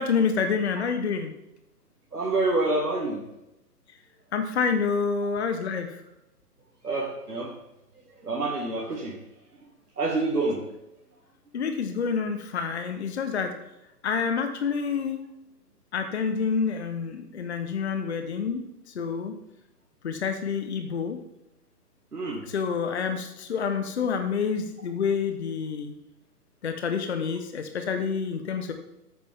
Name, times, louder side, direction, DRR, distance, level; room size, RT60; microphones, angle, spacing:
voice 1, 0.0-1.3 4.3-6.0 11.5-13.5 14.0-15.2 15.9-18.6 18.9-19.3 20.0-21.2 22.4-25.9 26.6-28.7, left 6 dB, 40° left, 7 dB, 1.0 m, -28 dB
voice 2, 2.1-3.2 6.8-7.5 8.2-9.2 10.0-10.6 22.1-22.4, right 2 dB, 70° right, -2 dB, 2.1 m, -27 dB
11.5 x 8.8 x 3.5 m, 0.90 s
figure-of-eight pair, 135°, 48 cm